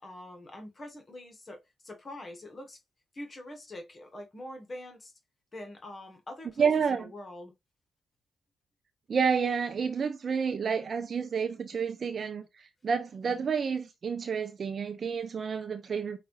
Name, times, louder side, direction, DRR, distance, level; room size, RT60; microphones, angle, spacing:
voice 1, 0.0-2.8 3.1-5.1 5.5-7.5, left 1 dB, 35° left, 1.6 m, -44 dB
voice 2, 6.6-7.1 9.1-16.2, right 6 dB, 55° right, 0.5 m, -29 dB
5.7 x 2.7 x 3.2 m
supercardioid pair, 60°, 0 cm